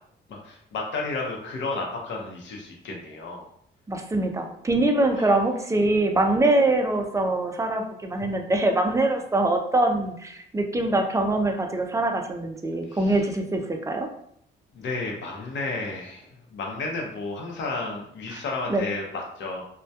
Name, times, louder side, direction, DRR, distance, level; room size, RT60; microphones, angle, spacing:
voice 1, 0.3-3.4 5.1-5.3 12.9-13.2 14.7-19.6, left 3 dB, 70° left, 0 dB, 0.7 m, -32 dB
voice 2, 3.9-14.1 18.3-18.4 18.7-18.8, right 2 dB, 15° right, 4 dB, 0.3 m, -23 dB
2.2 x 2.1 x 2.7 m, 0.69 s
cardioid pair, 90°, 20 cm